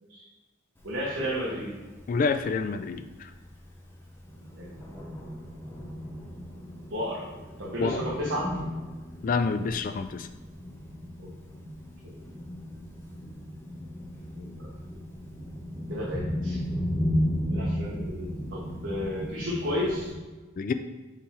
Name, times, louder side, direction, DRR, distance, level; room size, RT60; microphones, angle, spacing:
Thunder, 0.8-20.1, equal, 10° left, 1.0 m, -35 dB
voice 1, 0.8-1.8 4.6-4.7 6.9-7.3 7.6-8.5 11.2-11.3 12.0-12.2 14.3-14.7 15.9-16.6 17.4-20.1, left 1 dB, 65° right, -5 dB, 1.3 m, -32 dB
voice 2, 2.1-3.3 7.8-8.0 9.2-10.3 20.6-20.7, left 4 dB, 40° left, 10 dB, 0.3 m, -28 dB
6.9 x 3.5 x 4.6 m, 1.2 s
head